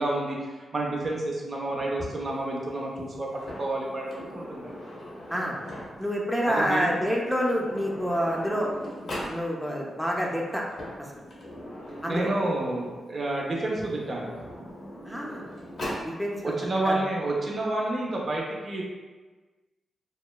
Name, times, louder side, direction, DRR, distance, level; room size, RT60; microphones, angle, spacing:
voice 1, 0.0-4.7 6.5-7.0 12.1-14.3 16.4-18.8, right 2 dB, 50° right, -2 dB, 0.5 m, -29 dB
Sliding door, 3.3-6.2 7.2-7.3 7.5-9.4 10.5-13.0 13.8-16.1, equal, 65° left, 0.8 m, -39 dB
voice 2, 6.0-8.7 9.3-10.6 11.1-11.2 12.0-12.3 15.0-15.4 16.0-16.5 16.8-17.0, equal, ahead, -2 dB, 0.5 m, -27 dB
2.9 x 2.0 x 2.2 m, 1.3 s
cardioid pair, 55°, 0 cm